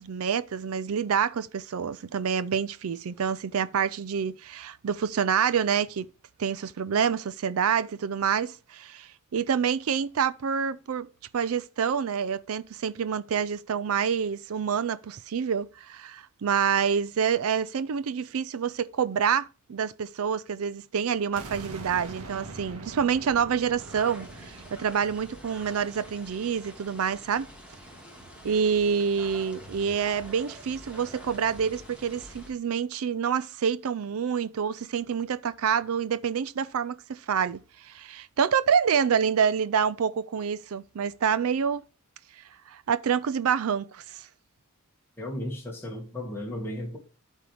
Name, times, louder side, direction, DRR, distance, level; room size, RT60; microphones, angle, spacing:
voice 1, 0.0-6.1 6.4-11.1 11.3-27.5 28.4-41.8 42.7-44.3, right 7 dB, 70° right, 0.4 m, -27 dB
sound 1, 21.4-27.1, right 2 dB, 85° right, 1.5 m, -44 dB
sound 2, 23.8-32.5, equal, 5° right, 1.8 m, -47 dB
voice 2, 45.2-47.0, left 1 dB, 10° left, 2.0 m, -35 dB
13.0 x 4.5 x 3.4 m
head